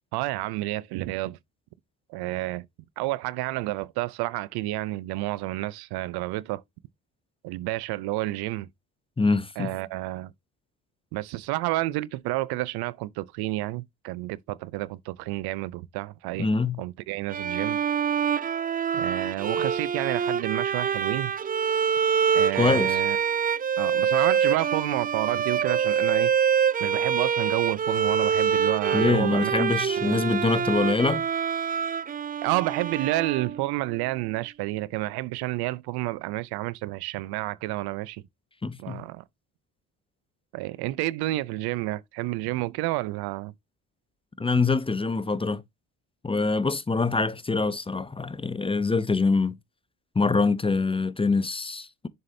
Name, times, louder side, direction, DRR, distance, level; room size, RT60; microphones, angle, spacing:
voice 1, 0.1-1.4 2.1-2.7 3.0-6.6 7.4-8.7 9.6-10.3 11.1-16.5 16.8-17.8 18.9-21.3 22.3-23.2 23.8-26.3 26.8-29.7 30.0-30.2 32.4-38.2 38.8-39.2 40.5-43.5, right 18 dB, 80° right, 0.6 m, -30 dB
voice 2, 9.2-9.7 16.4-16.8 22.6-23.0 28.9-31.2 38.6-39.0 44.4-45.6 46.2-49.6 50.2-52.1, left 4 dB, 15° left, 0.6 m, -24 dB
Bowed string instrument, 17.3-33.9, right 7 dB, 25° right, 0.4 m, -25 dB
7.0 x 6.5 x 2.7 m
supercardioid pair, 75°, 38 cm